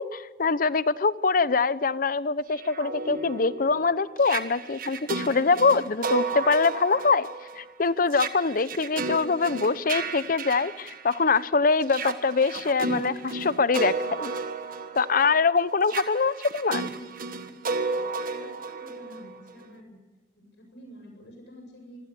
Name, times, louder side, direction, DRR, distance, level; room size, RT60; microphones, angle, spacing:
voice 1, 0.0-7.3 7.6-14.3 14.9-16.8, left 4 dB, 50° left, 16 dB, 0.8 m, -24 dB
sound 1, 2.5-11.4 11.8-19.6, right 4 dB, 55° right, 1.6 m, -33 dB
voice 2, 18.3-19.9 20.4-22.0, equal, 80° left, 0 dB, 7.8 m, -48 dB
26.0 x 16.5 x 8.6 m, 1.2 s
head